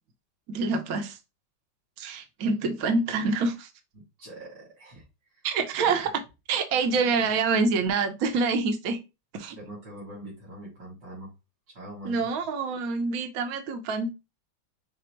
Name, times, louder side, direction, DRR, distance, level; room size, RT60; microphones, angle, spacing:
voice 1, 0.5-1.2 2.0-3.7 5.4-6.2 6.5-9.0 9.3-9.6 12.0-14.1, right 4 dB, 60° right, 1.2 m, -26 dB
voice 2, 4.2-5.0 5.3-5.5 5.8-6.0 7.2-7.3 9.6-11.3 11.7-12.2, right 1 dB, 85° right, 3.3 m, -43 dB
5.9 x 2.0 x 4.4 m
omnidirectional pair, 1.9 m